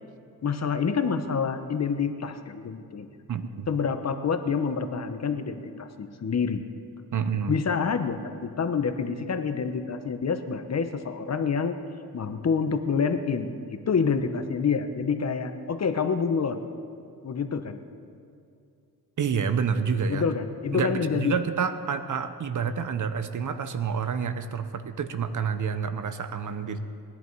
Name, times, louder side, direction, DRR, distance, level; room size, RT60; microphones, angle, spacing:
voice 1, 0.4-3.1 3.7-6.6 7.5-11.8 12.1-16.6 17.2-17.8 20.1-21.3, left 5 dB, 40° left, 8 dB, 1.0 m, -27 dB
voice 2, 3.3-3.7 7.1-7.6 19.2-20.3 20.7-26.8, right 6 dB, 50° right, 10 dB, 1.0 m, -28 dB
20.0 x 11.0 x 4.7 m, 2.5 s
cardioid pair, 75°, 39 cm